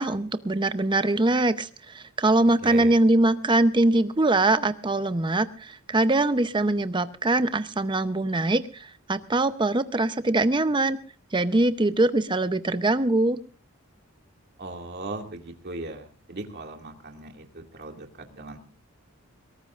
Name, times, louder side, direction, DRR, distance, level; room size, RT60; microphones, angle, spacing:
voice 1, 0.0-11.0 11.3-13.4, right 2 dB, 20° right, 12 dB, 0.7 m, -23 dB
voice 2, 2.6-2.9 14.6-17.4 17.7-18.6, right 2 dB, 50° right, 3 dB, 2.2 m, -38 dB
22.5 x 18.0 x 2.5 m, 0.37 s
head